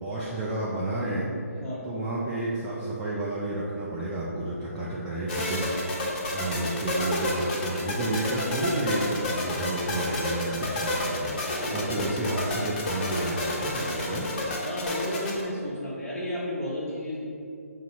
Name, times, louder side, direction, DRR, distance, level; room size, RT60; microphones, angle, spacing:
voice 1, 0.0-1.3 1.8-5.7 6.3-14.3, right 1 dB, 15° right, -7 dB, 0.4 m, -31 dB
voice 2, 1.6-1.9 11.4-12.1 14.6-17.3, left 1 dB, 10° left, -9 dB, 0.9 m, -33 dB
sound 1, 5.3-15.4, left 2 dB, 35° left, 0.8 m, -30 dB
3.9 x 2.7 x 4.5 m, 2.5 s
figure-of-eight pair, 140°, 8 cm